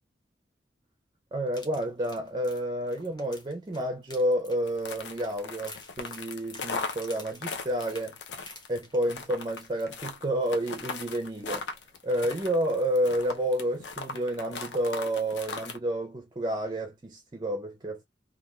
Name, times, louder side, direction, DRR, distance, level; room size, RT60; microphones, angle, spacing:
voice 1, 1.3-8.2 8.7-11.7 12.0-18.0, right 1 dB, 25° right, 0.5 m, -30 dB
sound 1, 1.5-9.3 9.6-9.8 10.2-10.3, left 2 dB, 25° left, 0.9 m, -50 dB
sound 2, 4.7-15.8, left 4 dB, 70° left, 0.6 m, -38 dB
3.3 x 2.4 x 2.3 m
head